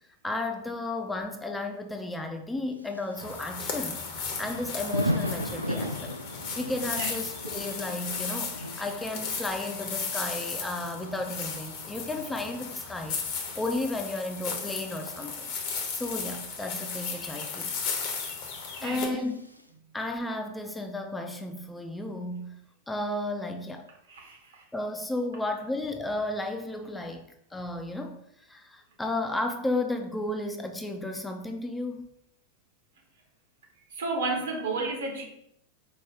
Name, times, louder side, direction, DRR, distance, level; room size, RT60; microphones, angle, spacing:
voice 1, 0.2-4.0 4.4-6.2 6.6-13.2 13.6-15.5 15.9-17.7 18.8-19.5 19.9-22.6 22.9-23.9 24.7-32.1, left 2 dB, 10° left, 4 dB, 0.4 m, -33 dB
Thunder / Rain, 2.8-19.6, equal, 90° right, 0.4 m, -39 dB
sound 1, 3.2-19.1, left 5 dB, 45° left, 0.9 m, -35 dB
voice 2, 18.8-19.2 24.1-24.6 33.9-35.2, right 3 dB, 65° right, 1 dB, 1.1 m, -32 dB
4.6 x 2.3 x 4.8 m, 0.74 s
figure-of-eight pair, 90°, 0 cm